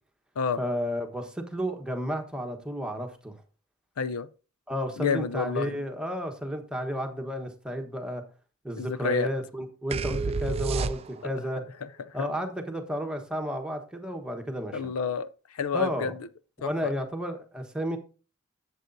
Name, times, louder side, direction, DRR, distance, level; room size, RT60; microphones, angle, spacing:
voice 1, 0.6-3.4 4.7-8.2 8.6-11.6 12.1-14.8 15.7-16.1 16.6-18.0, equal, 5° right, 1.1 m, -32 dB
voice 2, 4.0-4.3 5.0-5.8 8.8-9.3 11.2-12.3 14.7-16.3 16.6-16.9, left 5 dB, 80° left, 0.5 m, -30 dB
sound 1, 9.9-11.4, right 4 dB, 25° right, 0.3 m, -29 dB
11.0 x 7.7 x 2.6 m
head